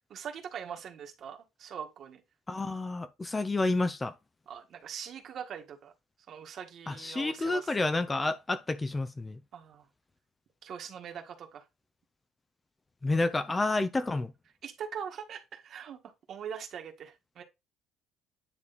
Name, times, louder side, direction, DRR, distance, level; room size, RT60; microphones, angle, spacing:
voice 1, 0.1-2.2 4.5-5.9 6.3-7.7 9.5-9.8 10.6-11.6 14.6-17.4, right 8 dB, 50° right, 1.6 m, -42 dB
voice 2, 2.5-4.1 6.9-9.4 13.0-14.3, left 2 dB, 15° left, 0.5 m, -29 dB
9.8 x 3.3 x 4.0 m
cardioid pair, 135°, 0 cm